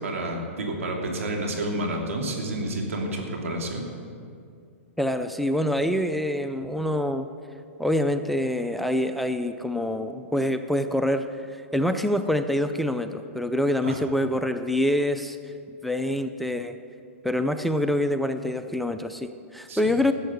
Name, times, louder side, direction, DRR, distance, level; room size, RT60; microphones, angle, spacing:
voice 1, 0.0-3.8 13.8-14.0 19.7-19.8, right 1 dB, 85° right, 1 dB, 2.7 m, -29 dB
voice 2, 5.0-7.3 7.8-15.4 15.8-16.8 17.2-20.1, left 1 dB, ahead, 8 dB, 0.4 m, -26 dB
13.5 x 7.4 x 8.0 m, 2.3 s
hypercardioid pair, 135°, 7 cm